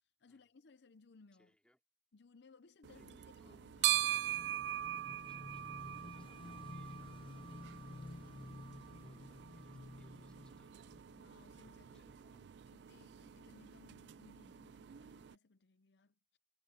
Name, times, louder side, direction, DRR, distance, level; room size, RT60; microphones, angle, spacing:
voice 1, 0.2-1.5 2.1-4.0 11.1-16.4, left 4 dB, 70° left, 0.7 m, -64 dB
voice 2, 1.3-1.8 2.9-3.7 5.3-7.6 8.5-10.9 11.9-12.5, equal, 5° left, 4.5 m, -72 dB
sound 1, 2.8-15.4, right 14 dB, 70° right, 0.4 m, -42 dB
Motorcycle / Engine, 3.4-11.9, left 2 dB, 30° left, 0.4 m, -53 dB
head